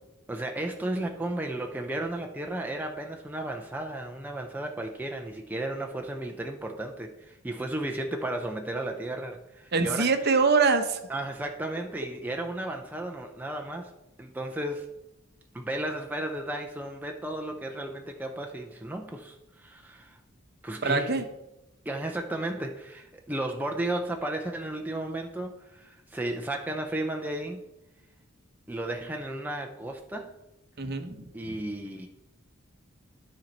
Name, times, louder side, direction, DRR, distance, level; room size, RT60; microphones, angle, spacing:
voice 1, 0.3-10.1 11.1-13.9 14.2-14.9 15.5-20.2 20.6-21.2 21.9-27.6 28.7-30.3 31.3-32.1, right 1 dB, 10° right, 2 dB, 0.4 m, -34 dB
voice 2, 9.7-11.0 20.8-21.2 30.8-31.2, right 4 dB, 50° right, 8 dB, 0.7 m, -23 dB
12.5 x 4.4 x 4.0 m, 0.95 s
head